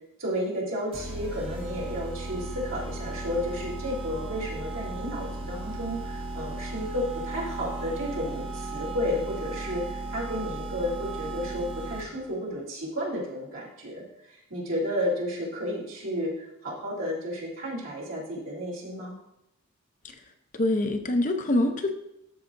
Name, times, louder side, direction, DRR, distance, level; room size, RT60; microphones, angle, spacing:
voice 1, 0.2-19.1, equal, 70° right, -4 dB, 3.0 m, -32 dB
sound 1, 0.9-12.3, right 2 dB, 25° right, 1.6 m, -36 dB
voice 2, 20.5-22.0, left 1 dB, 40° left, 6 dB, 0.6 m, -25 dB
13.0 x 5.6 x 2.6 m, 0.85 s
head